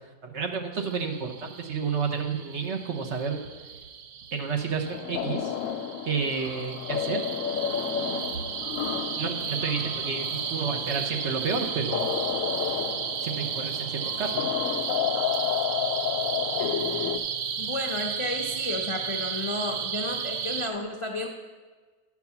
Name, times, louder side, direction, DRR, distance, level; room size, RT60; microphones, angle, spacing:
voice 1, 0.2-3.4 4.3-5.5 6.0-7.2 9.2-12.2 13.2-14.4, right 5 dB, 55° right, 3 dB, 1.1 m, -30 dB
sound 1, 0.7-20.7, right 7 dB, 85° right, 1.2 m, -34 dB
sound 2, 4.9-17.2, left 9 dB, 70° left, 0.9 m, -31 dB
voice 2, 17.6-21.3, left 2 dB, 45° left, 1 dB, 0.4 m, -32 dB
11.0 x 4.7 x 6.9 m, 1.4 s
omnidirectional pair, 1.6 m